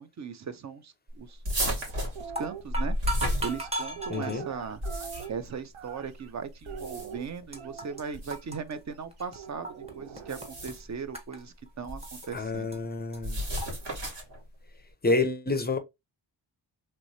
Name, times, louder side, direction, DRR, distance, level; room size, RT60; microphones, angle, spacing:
voice 1, 0.0-1.8 2.2-4.8 5.3-9.7 10.0-12.8, right 6 dB, 40° right, 0.4 m, -38 dB
sound 1, 1.4-4.1 4.6-5.5 6.6-7.3 8.1-8.4 10.2-10.9 11.9-12.4 13.2-14.4, equal, 60° right, 1.7 m, -32 dB
sound 2, 1.6-1.9 2.2-4.4 5.1-5.3 6.1-6.2 7.0-7.1 7.3-8.0 8.3-9.9 10.2-10.7 11.1-12.3 12.7-12.8 13.1-13.2 13.6-13.7, right 2 dB, 15° right, 0.9 m, -36 dB
sound 3, 2.0-2.6 3.4-6.3 6.7-8.2 9.4-10.7, right 7 dB, 85° right, 0.7 m, -43 dB
voice 2, 4.1-4.4 12.3-13.4 15.0-15.8, left 3 dB, 20° left, 0.4 m, -28 dB
3.1 x 3.0 x 2.6 m
wide cardioid pair, 110°, 48 cm